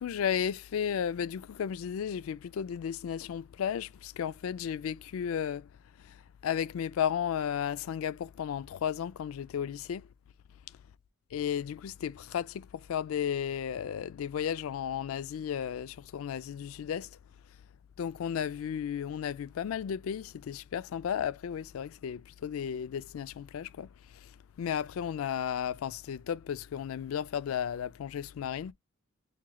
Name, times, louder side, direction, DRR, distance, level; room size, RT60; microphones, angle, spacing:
voice 1, 0.0-5.7 6.1-10.1 11.3-17.1 18.0-23.9 24.2-24.3 24.6-28.7, left 8 dB, 85° left, 0.3 m, -34 dB
5.8 x 3.0 x 2.2 m
head